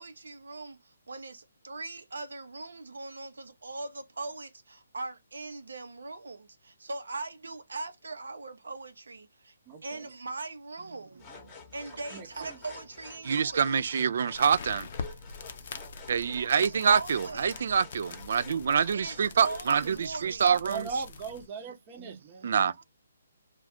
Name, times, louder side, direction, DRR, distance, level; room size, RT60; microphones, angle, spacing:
voice 1, 0.0-9.5 9.8-11.3 11.7-13.7 16.5-17.5 18.9-20.5, right 3 dB, 75° right, 0.7 m, -40 dB
voice 2, 9.7-10.1 12.1-12.6 20.7-22.5, right 4 dB, 30° right, 0.8 m, -39 dB
sound 1, 11.2-20.0, left 5 dB, 20° left, 0.9 m, -49 dB
voice 3, 13.2-14.9 16.1-20.9 22.4-22.7, right 7 dB, 55° right, 0.3 m, -26 dB
sound 2, 14.3-21.5, left 5 dB, 50° left, 0.5 m, -44 dB
2.4 x 2.3 x 3.4 m
figure-of-eight pair, 145°, 0 cm